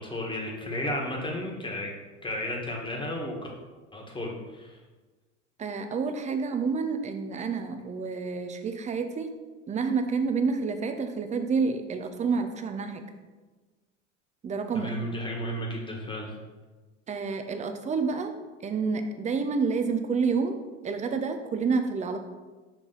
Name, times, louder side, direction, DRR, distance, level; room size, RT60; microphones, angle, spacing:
voice 1, 0.0-1.9 2.2-3.4 3.9-4.8 14.7-16.4, left 1 dB, 15° left, -1 dB, 1.5 m, -33 dB
voice 2, 5.6-9.3 9.7-13.0 14.4-14.9 17.1-18.3 18.6-22.2, right 5 dB, 20° right, 7 dB, 0.6 m, -29 dB
5.6 x 4.5 x 3.9 m, 1.3 s
hypercardioid pair, 85°, 37 cm